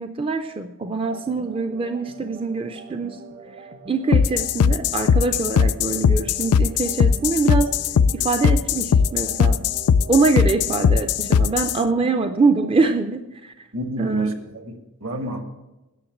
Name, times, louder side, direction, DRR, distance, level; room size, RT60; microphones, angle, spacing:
voice 1, 0.0-3.2 3.6-7.7 8.1-9.6 10.1-13.7 14.0-14.3, right 3 dB, 25° right, 8 dB, 0.4 m, -24 dB
sound 1, 1.0-12.9, right 3 dB, 45° right, 1.0 m, -43 dB
sound 2, 4.1-11.8, left 6 dB, 85° left, 0.4 m, -19 dB
voice 2, 13.7-15.4, right 1 dB, 65° right, 6 dB, 1.4 m, -28 dB
9.9 x 6.4 x 8.6 m, 1.0 s
head